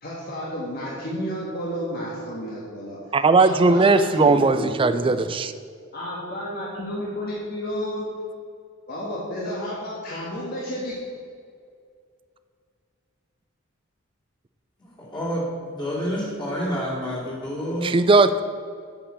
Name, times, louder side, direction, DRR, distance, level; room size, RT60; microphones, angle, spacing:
voice 1, 0.0-3.0 3.4-5.2 5.9-8.1 8.9-10.9, equal, 45° left, -5 dB, 1.6 m, -31 dB
voice 2, 3.1-5.5 17.8-18.4, right 3 dB, 25° right, 11 dB, 0.4 m, -18 dB
voice 3, 14.8-17.9, equal, 20° left, -6 dB, 2.6 m, -29 dB
8.5 x 5.0 x 7.2 m, 2.2 s
head